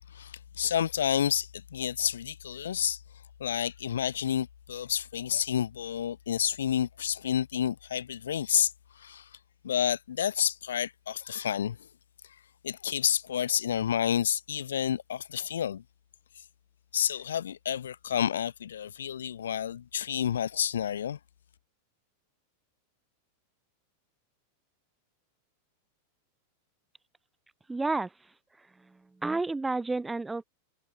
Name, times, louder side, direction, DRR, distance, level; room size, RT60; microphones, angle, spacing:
voice 1, 0.1-3.0 3.4-9.3 9.6-11.9 12.6-15.8 16.9-21.2, left 9 dB, 65° left, 3.4 m, -30 dB
voice 2, 27.7-28.1 29.2-30.4, right 3 dB, 10° right, 1.3 m, -30 dB
figure-of-eight pair, 90°, 0 cm